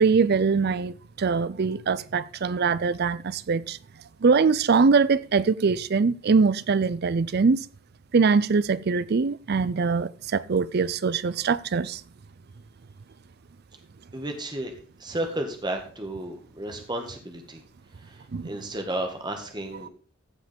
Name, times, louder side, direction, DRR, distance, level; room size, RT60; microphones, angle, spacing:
voice 1, 0.0-3.8 4.2-7.6 8.1-12.0 18.3-18.5, right 5 dB, 50° right, 0.5 m, -22 dB
voice 2, 14.1-17.6 18.0-19.9, right 1 dB, 20° right, 1.7 m, -33 dB
15.5 x 5.1 x 5.2 m
head